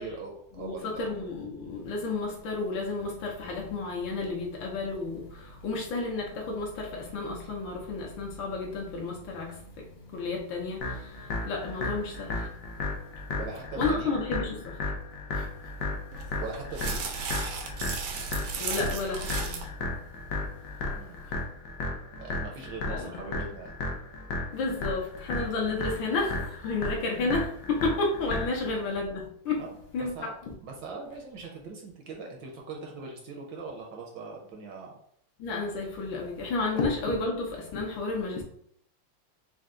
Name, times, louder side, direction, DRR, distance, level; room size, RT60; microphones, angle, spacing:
voice 1, 0.0-1.1 13.4-14.1 16.4-17.1 20.9-21.4 22.2-23.7 28.5-28.6 29.6-34.9, right 4 dB, 70° right, 1.2 m, -41 dB
voice 2, 0.6-12.5 13.8-14.8 15.3-15.5 18.6-19.7 22.9-23.3 24.5-29.6 29.9-30.3 35.4-38.4, left 3 dB, 70° left, 1.5 m, -32 dB
sound 1, 10.8-28.8, left 2 dB, 90° left, 0.7 m, -34 dB
sound 2, 16.1-19.7, right 5 dB, 85° right, 1.6 m, -35 dB
4.4 x 2.2 x 3.6 m
omnidirectional pair, 2.3 m